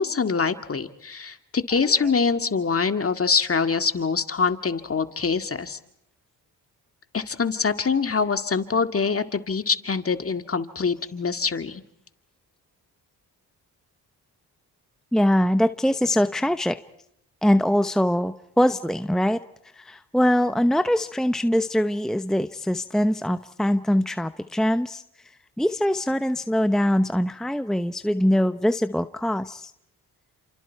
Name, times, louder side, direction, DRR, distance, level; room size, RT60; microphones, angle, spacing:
voice 1, 0.0-5.8 7.1-11.8, left 5 dB, 35° left, 8 dB, 2.0 m, -24 dB
voice 2, 1.7-2.1 15.1-16.8 17.4-19.4 19.7-25.0 25.6-29.7, equal, ahead, 10 dB, 0.9 m, -23 dB
30.0 x 27.5 x 4.6 m, 0.76 s
cardioid pair, 65°, 37 cm